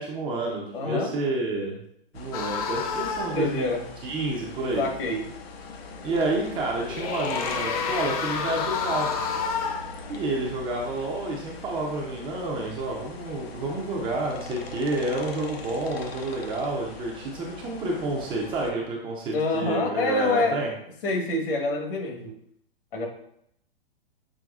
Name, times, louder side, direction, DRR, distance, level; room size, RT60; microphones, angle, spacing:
voice 1, 0.0-1.8 2.1-3.7 4.0-4.9 6.0-9.2 10.1-20.7, right 2 dB, 15° right, -1 dB, 0.5 m, -29 dB
voice 2, 0.7-1.2 3.3-3.9 4.8-5.3 19.3-20.6 21.0-22.4 22.9-23.1, left 3 dB, 65° left, 2 dB, 1.3 m, -26 dB
sound 1, 2.1-18.7, left 3 dB, 80° left, 0.8 m, -41 dB
sound 2, 2.3-3.5 6.6-10.0, left 6 dB, 40° left, 0.5 m, -29 dB
6.2 x 3.3 x 2.3 m, 0.71 s
hypercardioid pair, 145°, 30 cm